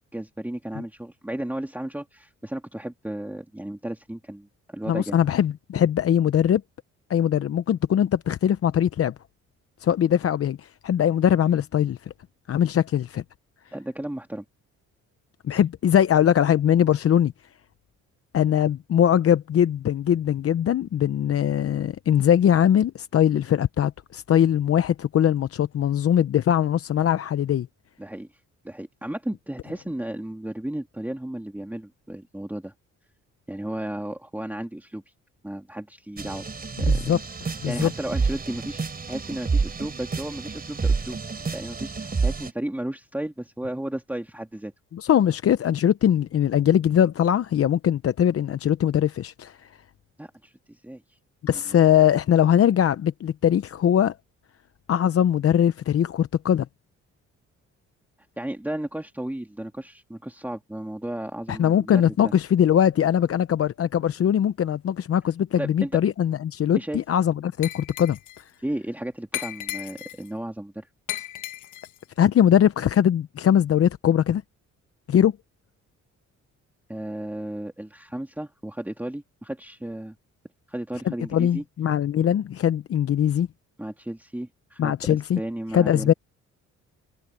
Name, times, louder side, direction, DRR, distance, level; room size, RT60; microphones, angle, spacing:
voice 1, 0.1-5.2 13.7-14.4 28.0-28.3 28.6-32.7 33.5-35.0 35.4-36.5 36.8-37.1 37.7-41.2 41.5-44.7 50.2-51.2 51.5-51.8 58.4-62.3 65.6-65.9 66.8-67.0 68.6-70.9 76.9-80.1 80.7-81.6 83.8-86.1, right 1 dB, 5° right, 2.6 m, -34 dB
voice 2, 4.9-6.6 7.1-9.1 9.8-12.0 12.5-13.2 15.4-17.3 18.3-27.7 36.8-37.2 37.6-37.9 44.9-49.7 51.4-54.1 54.9-56.7 61.5-68.2 72.2-74.4 75.1-75.3 81.1-83.5 84.8-85.4 85.7-86.1, left 9 dB, 50° left, 0.7 m, -21 dB
sound 1, 36.2-42.5, right 4 dB, 30° right, 3.5 m, -28 dB
Glass, 67.6-68.4 69.3-70.3 71.1-72.0, left 13 dB, 80° left, 1.5 m, -35 dB
cardioid pair, 90°, 30 cm